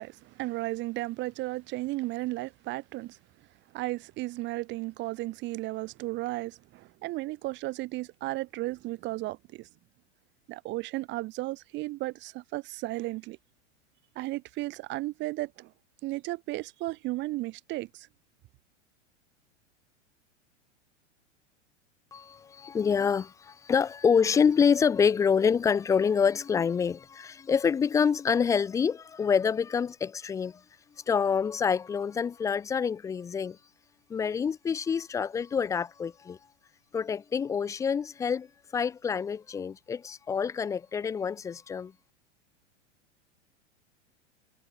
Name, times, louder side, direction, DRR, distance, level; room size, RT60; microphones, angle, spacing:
voice 1, 0.0-3.2 3.7-9.7 10.5-13.4 14.1-15.7 16.0-18.1, right 19 dB, 30° right, 0.9 m, -34 dB
voice 2, 22.1-30.6 31.1-33.6 34.1-36.4 36.9-38.5 38.7-41.9, left 6 dB, 10° left, 0.4 m, -27 dB
figure-of-eight pair, 90°, 36 cm